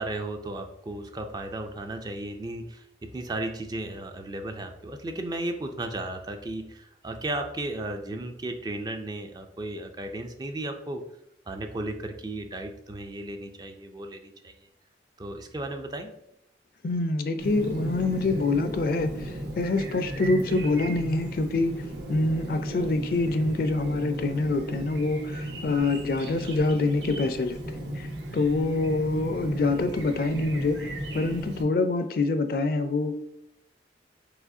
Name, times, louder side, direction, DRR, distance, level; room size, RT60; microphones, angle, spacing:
voice 1, 0.0-11.0 11.5-14.5 15.2-16.1, right 2 dB, 20° right, 0.3 m, -35 dB
voice 2, 16.8-21.7 22.1-27.6 27.9-28.1 28.3-33.2, left 2 dB, 55° left, 0.4 m, -26 dB
Chirp tweet, 17.4-31.6, right 1 dB, 80° right, 1.0 m, -36 dB
4.8 x 3.8 x 2.6 m
head